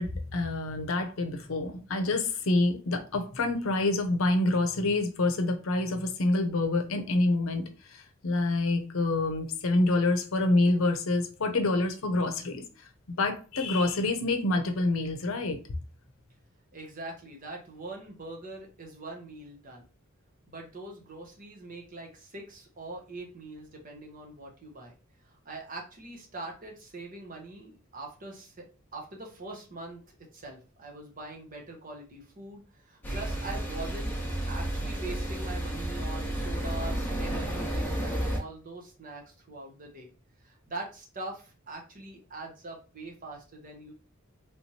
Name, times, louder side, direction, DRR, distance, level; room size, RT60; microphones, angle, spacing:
voice 1, 0.0-12.9 13.2-15.6, left 2 dB, 75° left, 0.6 m, -27 dB
voice 2, 16.7-19.8 20.5-24.9 25.2-28.5 28.9-34.1 34.5-40.1 40.4-43.9, right 2 dB, 40° right, 1.0 m, -43 dB
sound 1, 33.0-38.4, right 1 dB, 10° left, 0.9 m, -32 dB
3.4 x 3.0 x 2.8 m
head